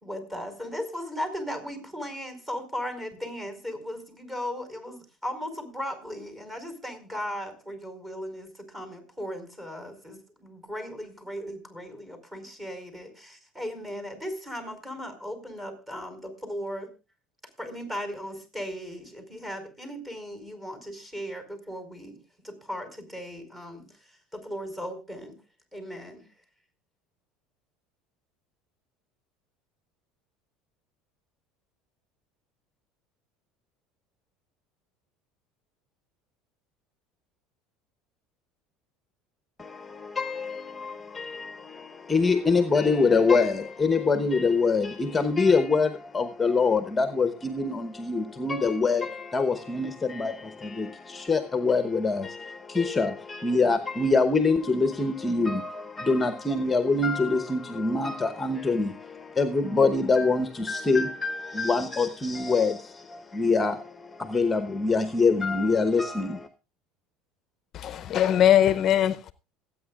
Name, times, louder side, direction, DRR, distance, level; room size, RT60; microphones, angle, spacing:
voice 1, 0.0-16.9 17.6-25.4 25.7-26.3, equal, 15° right, 4.7 m, -37 dB
voice 2, 39.6-66.5, left 4 dB, 15° left, 1.0 m, -25 dB
voice 3, 67.7-69.3, left 11 dB, 45° left, 0.6 m, -21 dB
26.5 x 9.0 x 2.4 m
supercardioid pair, 100°, 0 cm